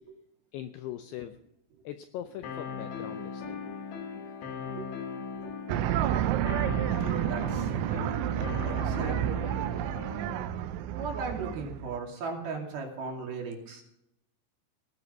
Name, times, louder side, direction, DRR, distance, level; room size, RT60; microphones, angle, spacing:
voice 1, 0.5-1.4 1.8-3.6, left 11 dB, 90° left, 8 dB, 2.3 m, -41 dB
sound 1, 2.4-10.4, left 6 dB, 65° left, 4.1 m, -39 dB
sound 2, 5.7-12.0, right 11 dB, 85° right, 3.1 m, -30 dB
voice 2, 6.3-6.6 7.2-7.7 8.6-9.4 10.9-13.8, right 4 dB, 55° right, 1 dB, 4.1 m, -37 dB
18.0 x 11.0 x 5.5 m, 0.78 s
omnidirectional pair, 5.6 m